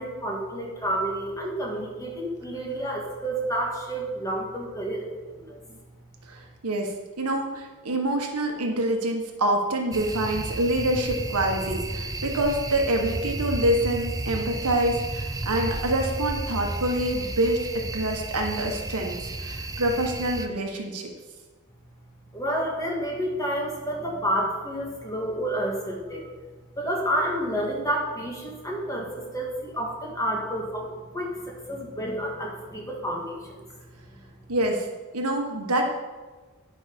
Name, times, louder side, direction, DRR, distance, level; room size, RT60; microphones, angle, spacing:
voice 1, 0.0-5.1 5.4-5.8 22.3-26.3 26.8-33.6, right 1 dB, 15° left, -2 dB, 2.0 m, -30 dB
voice 2, 6.3-6.9 7.2-21.1 34.5-34.9 35.1-35.9, right 1 dB, 85° right, 2 dB, 1.5 m, -26 dB
sound 1, 9.9-20.5, right 2 dB, 15° right, 0.6 m, -32 dB
10.5 x 6.0 x 5.4 m, 1.3 s
head